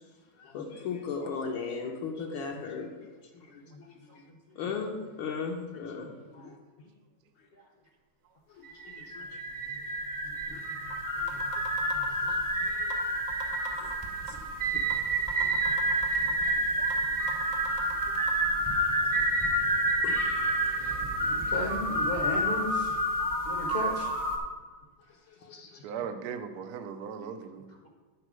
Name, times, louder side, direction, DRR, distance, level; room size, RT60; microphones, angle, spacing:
voice 1, 0.4-2.9 3.5-3.9 4.6-6.1 6.4-6.5 8.6-9.3 10.5-10.6 12.3-12.4 12.6-13.0 13.8-13.9 14.3-14.4 14.7-14.8 18.2-18.3 19.4-19.5 20.0-20.8 25.4-25.7, left 5 dB, 75° left, 0 dB, 1.5 m, -37 dB
sound 1, 8.6-24.4, right 1 dB, 15° right, 0.7 m, -29 dB
voice 2, 10.2-11.6 11.9-12.1 14.8-14.9 15.3-15.5 21.2-23.0 23.5-24.1, left 2 dB, 45° left, 0 dB, 0.8 m, -37 dB
sound 2, 10.4-10.5 10.9-11.0 11.3-12.5 12.9-13.0 13.3-14.5 14.9-15.0 15.3-16.5 16.9-17.0 17.3-18.3, right 3 dB, 50° right, 0.4 m, -40 dB
voice 3, 25.8-27.7, right 7 dB, 80° right, 6 dB, 0.8 m, -38 dB
9.9 x 4.4 x 6.2 m, 1.3 s
omnidirectional pair, 2.4 m